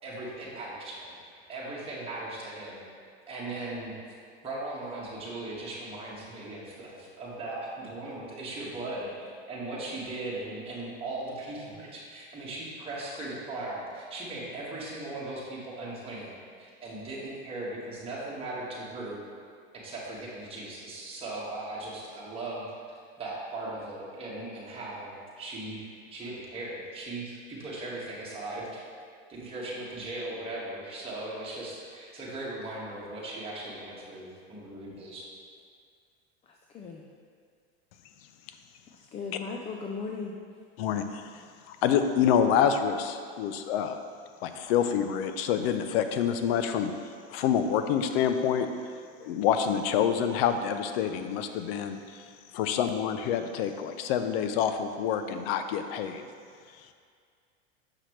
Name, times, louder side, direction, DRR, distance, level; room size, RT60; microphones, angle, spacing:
voice 1, 0.0-1.2 1.5-2.8 3.3-4.1 4.4-19.2 19.8-25.8 26.1-28.8 29.3-35.3, right 2 dB, 15° right, -7 dB, 1.6 m, -38 dB
voice 2, 39.1-40.3, left 4 dB, 20° left, 0 dB, 0.3 m, -36 dB
voice 3, 40.8-44.0 44.4-46.9 47.3-48.7 49.2-52.2 52.5-56.2, left 8 dB, 65° left, 8 dB, 0.6 m, -27 dB
6.7 x 5.7 x 3.1 m, 2.1 s
supercardioid pair, 120°, 32 cm